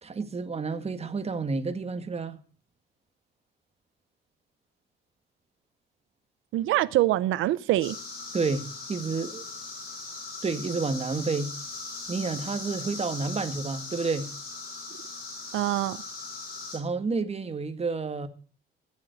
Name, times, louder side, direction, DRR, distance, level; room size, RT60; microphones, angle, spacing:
voice 1, 0.0-2.4 8.3-9.5 10.4-11.5 12.1-14.3 16.7-18.3, right 4 dB, 30° right, 1.7 m, -30 dB
voice 2, 6.5-8.0 15.5-16.0, right 15 dB, 90° right, 0.7 m, -24 dB
sound 1, 7.8-16.8, left 3 dB, 50° left, 5.6 m, -39 dB
14.5 x 7.5 x 8.0 m
cardioid pair, 90°, 20 cm